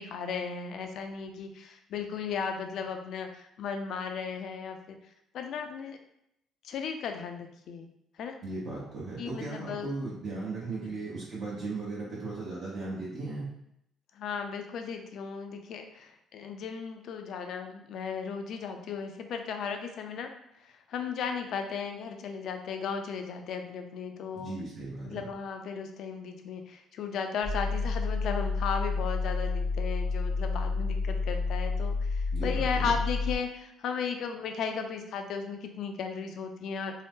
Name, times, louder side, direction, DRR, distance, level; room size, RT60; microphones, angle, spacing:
voice 1, 0.0-5.0 5.3-6.0 6.6-7.9 8.2-8.4 9.2-10.0 10.8-10.9 14.1-20.3 20.6-24.5 25.0-37.0, left 6 dB, 65° left, 5 dB, 0.4 m, -35 dB
voice 2, 8.4-13.5 24.3-25.2 32.3-32.9, right 3 dB, 50° right, -7 dB, 0.8 m, -37 dB
sound 1, 27.4-33.4, left 4 dB, 20° left, 0.6 m, -30 dB
2.7 x 2.0 x 3.5 m, 0.77 s
cardioid pair, 125°, 0 cm